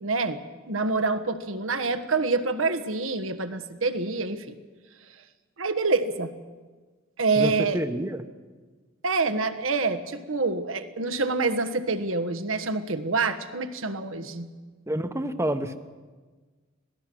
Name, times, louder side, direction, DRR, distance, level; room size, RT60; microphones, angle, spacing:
voice 1, 0.0-4.5 5.6-6.3 7.2-7.8 9.0-14.5, right 3 dB, 85° right, 9 dB, 1.4 m, -26 dB
voice 2, 7.4-8.3 14.9-15.8, right 1 dB, 15° right, 9 dB, 1.0 m, -28 dB
26.0 x 18.5 x 6.3 m, 1.4 s
head